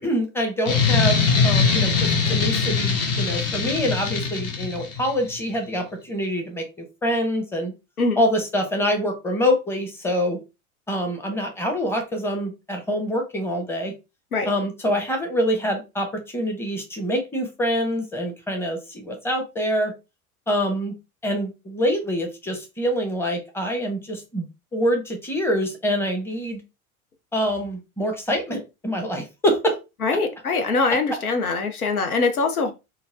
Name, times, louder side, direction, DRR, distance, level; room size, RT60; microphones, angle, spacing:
voice 1, 0.0-6.6 7.0-7.7 8.2-10.4 10.9-13.9 14.5-19.9 20.5-20.9 21.2-24.5 24.7-26.6 27.3-29.8, equal, 5° left, 0.9 m, -25 dB
sound 1, 0.7-5.1, left 5 dB, 35° left, 0.9 m, -21 dB
voice 2, 30.0-32.7, left 3 dB, 85° left, 0.7 m, -23 dB
3.9 x 2.1 x 2.6 m
figure-of-eight pair, 80°, 43 cm